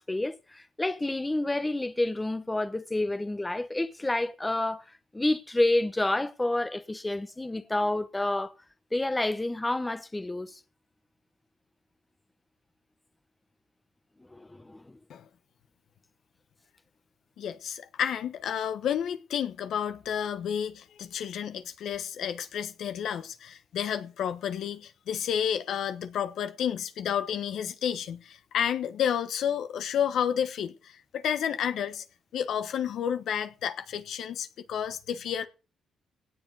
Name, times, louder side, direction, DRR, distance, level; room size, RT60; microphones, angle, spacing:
voice 1, 0.0-4.8 5.1-8.5 8.9-10.6 14.3-15.0, left 2 dB, 15° left, 1.0 m, -29 dB
voice 2, 17.4-32.0 32.3-35.5, left 9 dB, 70° left, 1.1 m, -31 dB
17.5 x 7.7 x 4.8 m
cardioid pair, 90°, 0 cm